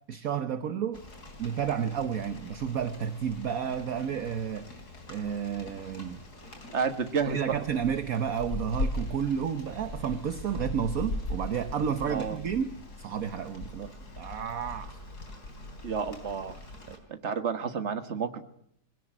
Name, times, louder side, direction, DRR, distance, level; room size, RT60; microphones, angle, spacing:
voice 1, 0.1-1.0 1.4-6.2 7.3-12.7 13.0-15.0 16.9-17.0, right 8 dB, 60° right, 10 dB, 1.4 m, -31 dB
Rain, 0.9-17.0, left 2 dB, 70° left, 4.2 m, -40 dB
voice 2, 6.7-7.4 12.1-12.4 15.8-16.6 17.1-18.4, right 6 dB, 45° right, 9 dB, 1.8 m, -30 dB
21.5 x 17.0 x 9.1 m, 0.72 s
omnidirectional pair, 1.8 m